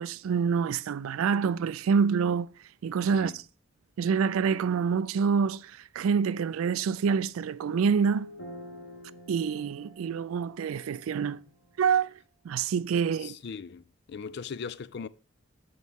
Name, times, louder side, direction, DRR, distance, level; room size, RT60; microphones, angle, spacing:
voice 1, 0.0-2.5 2.8-3.4 4.0-8.3 9.3-11.4 11.8-12.1 12.4-13.4, right 6 dB, 90° right, 0.3 m, -27 dB
sound 1, 7.7-12.1, left 1 dB, 75° left, 1.4 m, -47 dB
voice 2, 13.2-15.1, left 5 dB, 55° left, 0.4 m, -39 dB
8.5 x 6.2 x 3.5 m
head